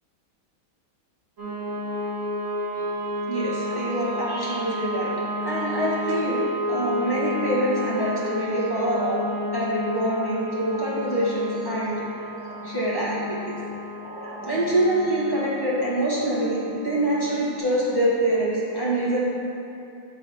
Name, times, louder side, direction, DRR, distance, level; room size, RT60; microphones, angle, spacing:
sound 1, 1.4-17.6, left 1 dB, 45° right, 1.5 m, -31 dB
voice 1, 3.3-5.1 5.4-6.4 6.7-9.2 9.5-12.0 12.4-13.5 14.0-19.2, right 1 dB, 15° left, -8 dB, 0.8 m, -25 dB
8.4 x 3.2 x 5.5 m, 2.7 s
omnidirectional pair, 2.3 m